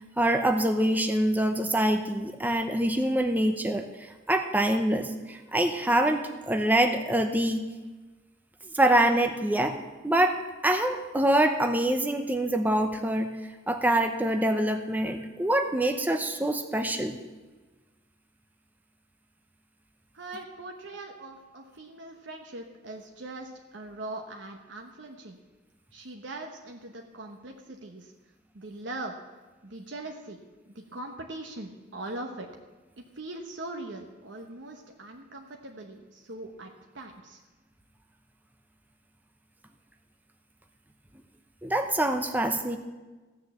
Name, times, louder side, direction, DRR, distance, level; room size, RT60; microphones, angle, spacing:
voice 1, 0.2-3.8 4.3-7.7 8.7-9.8 10.0-10.4 10.6-13.3 13.7-17.2 41.6-42.8, right 1 dB, 10° right, 5 dB, 0.8 m, -25 dB
voice 2, 20.1-25.4 25.9-28.1 28.5-29.2 29.6-30.4 30.7-32.5 33.1-37.4, right 2 dB, 90° right, 2 dB, 1.1 m, -41 dB
15.0 x 6.7 x 7.3 m, 1.2 s
head